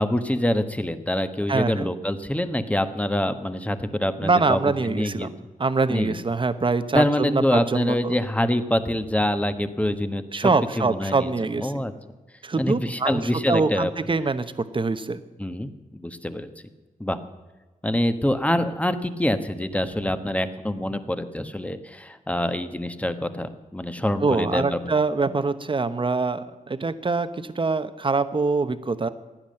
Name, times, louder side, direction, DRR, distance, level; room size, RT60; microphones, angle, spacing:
voice 1, 0.0-4.6 4.8-5.3 5.9-6.1 6.9-10.5 10.8-11.3 11.6-11.9 12.6-13.9 15.4-16.5 17.0-17.2 17.8-24.9, left 1 dB, 10° left, 10 dB, 1.2 m, -25 dB
voice 2, 1.5-1.9 4.2-5.3 5.6-8.1 10.3-11.7 12.4-13.2 13.5-14.4 14.7-15.2 24.2-29.1, right 3 dB, 35° right, 11 dB, 1.0 m, -24 dB
16.0 x 10.5 x 7.7 m, 1.2 s
cardioid pair, 75°, 15 cm